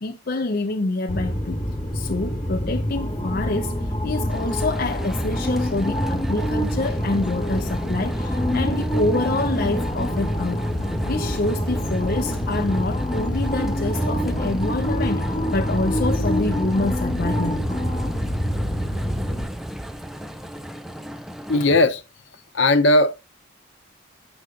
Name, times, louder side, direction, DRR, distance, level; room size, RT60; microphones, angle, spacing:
voice 1, 0.0-1.6 1.9-10.6 11.1-17.6, left 2 dB, 45° left, 0.5 m, -26 dB
sound 1, 1.1-19.4, equal, 25° left, 1.3 m, -26 dB
sound 2, 4.3-21.9, equal, ahead, 0.4 m, -34 dB
voice 2, 21.5-22.0 22.5-23.1, left 2 dB, 65° left, 0.9 m, -17 dB
7.9 x 6.3 x 2.4 m
head